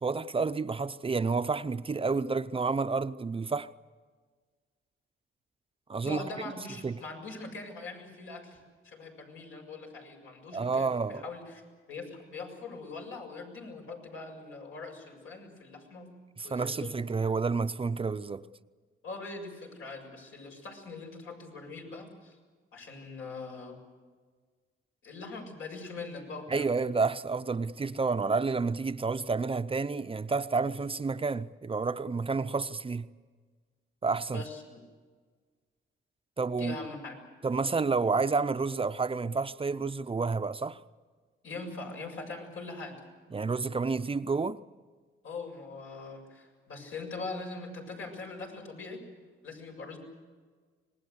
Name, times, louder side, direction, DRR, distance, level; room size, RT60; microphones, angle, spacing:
voice 1, 0.0-3.7 5.9-6.2 6.8-7.0 10.5-11.2 16.4-18.4 26.5-33.1 34.0-34.4 36.4-36.8 37.4-40.8 43.3-44.6, right 4 dB, 25° right, 0.6 m, -30 dB
voice 2, 6.0-8.6 8.8-11.6 11.9-16.1 16.4-17.0 19.0-22.4 22.7-23.8 25.0-26.8 34.3-34.8 36.6-37.2 41.4-43.0 45.2-49.0 49.4-50.0, left 3 dB, 80° left, 7.2 m, -42 dB
26.0 x 20.5 x 8.1 m
cardioid pair, 105°, 21 cm